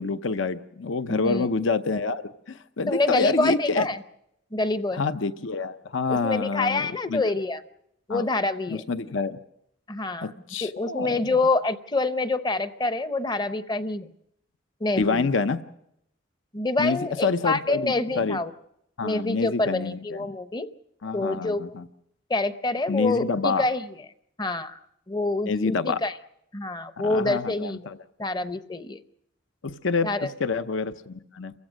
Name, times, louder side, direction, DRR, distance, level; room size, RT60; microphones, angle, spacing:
voice 1, 0.0-3.9 4.9-7.2 8.1-8.2 8.7-9.4 10.2-11.3 15.0-15.6 16.8-18.4 19.0-20.3 21.0-21.9 22.9-23.6 25.5-26.0 27.0-28.0 29.6-31.5, left 4 dB, 70° left, 11 dB, 0.7 m, -27 dB
voice 2, 1.1-1.5 2.9-4.0 4.5-5.0 6.1-7.6 8.1-8.8 9.9-10.3 10.6-14.1 14.8-15.3 16.5-18.5 19.0-20.7 21.1-21.7 22.3-23.9 24.4-24.8 25.1-26.1 26.5-27.8 28.2-29.0 30.0-30.3, left 2 dB, 20° left, 11 dB, 0.7 m, -26 dB
28.5 x 15.5 x 6.3 m, 0.78 s
head